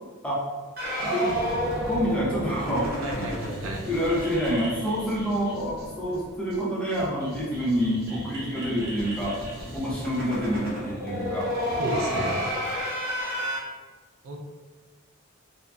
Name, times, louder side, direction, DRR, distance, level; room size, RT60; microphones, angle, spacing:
sound 1, 0.8-5.9 6.1-6.2 6.5-6.6 6.9-13.6, equal, 50° right, 0.8 m, -32 dB
voice 1, 1.0-1.4 1.8-3.3 3.9-9.4 9.7-11.5, equal, 5° left, -7 dB, 0.6 m, -27 dB
sound 2, 1.3-7.1, equal, 40° left, 0.8 m, -41 dB
voice 2, 3.0-3.9 9.8-10.0 11.7-12.4 14.2-14.4, right 1 dB, 75° right, 0 dB, 0.5 m, -32 dB
sound 3, 7.0-12.3, left 1 dB, 80° left, 0.7 m, -44 dB
3.8 x 2.0 x 2.2 m, 1.4 s
head